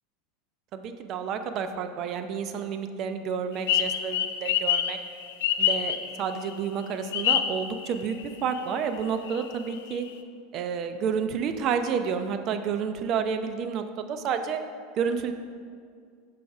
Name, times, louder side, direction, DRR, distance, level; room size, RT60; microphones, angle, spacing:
voice 1, 0.7-5.0 5.6-8.2 8.4-10.1 10.5-14.6 15.0-15.3, right 6 dB, 45° right, 8 dB, 0.4 m, -30 dB
sound 1, 3.7-6.5 7.1-8.2 8.5-8.6 9.0-10.1, left 9 dB, 70° left, 0.3 m, -26 dB
6.0 x 4.9 x 3.5 m, 2.2 s
figure-of-eight pair, 80°, 0 cm